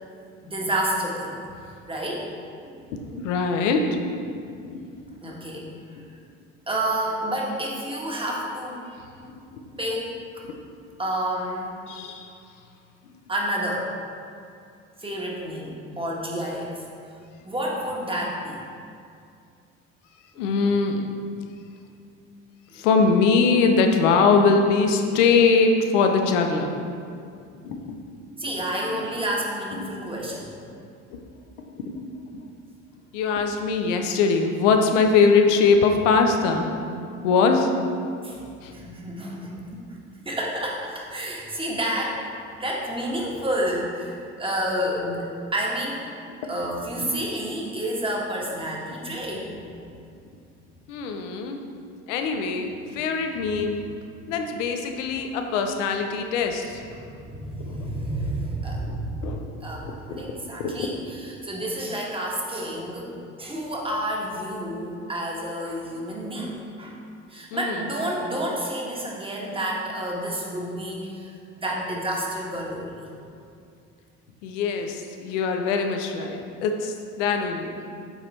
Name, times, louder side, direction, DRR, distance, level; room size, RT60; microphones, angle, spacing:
voice 1, 0.4-1.4 1.9-2.3 2.6-3.2 5.2-6.0 6.7-8.9 9.8-10.4 11.0-11.7 13.3-13.9 15.0-16.8 17.4-18.6 20.5-20.7 22.7-22.9 28.4-30.5 38.2-38.4 38.7-39.9 40.1-42.2 42.6-45.2 45.5-46.0 46.4-49.6 56.9-59.3 59.6-63.1 63.4-67.0 67.3-73.1, right 1 dB, 15° right, -3 dB, 1.7 m, -30 dB
voice 2, 2.9-4.8 9.4-9.6 11.9-12.3 20.4-21.1 22.7-26.7 27.6-28.0 28.9-29.0 29.8-29.9 31.1-31.2 31.8-32.4 33.1-36.7 37.2-37.7 38.6-38.7 50.9-51.6 52.1-53.8 54.3-56.8 57.6-57.7 58.7-59.4 59.8-59.9 60.6-61.0 67.5-67.8 74.4-77.8, left 4 dB, 80° left, 4 dB, 0.8 m, -22 dB
7.9 x 4.3 x 4.3 m, 2.4 s
hypercardioid pair, 65°, 36 cm